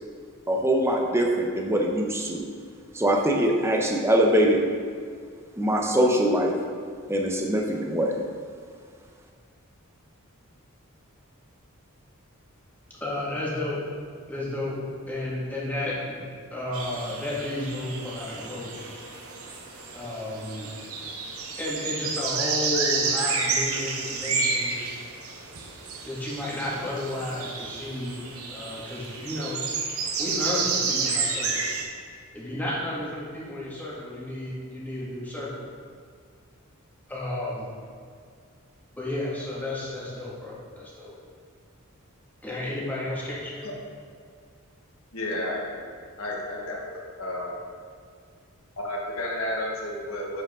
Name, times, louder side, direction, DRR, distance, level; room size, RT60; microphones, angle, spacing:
voice 1, 0.5-2.4 2.9-4.6 5.6-6.5 7.1-8.2, right 1 dB, 10° right, 1 dB, 0.7 m, -23 dB
voice 2, 13.0-13.8 14.3-14.8 15.1-16.2 16.5-18.7 19.9-20.7 21.6-24.7 26.0-28.2 28.5-29.6 30.2-31.8 32.3-35.6 37.1-37.7 38.9-41.1 42.4-43.7, left 1 dB, 10° left, -7 dB, 1.8 m, -32 dB
sound 1, 16.7-31.8, right 4 dB, 80° right, 1.0 m, -30 dB
voice 3, 45.1-45.6 46.2-47.6 48.8-50.4, left 1 dB, 75° left, -2 dB, 1.3 m, -32 dB
10.5 x 5.1 x 3.7 m, 2.1 s
head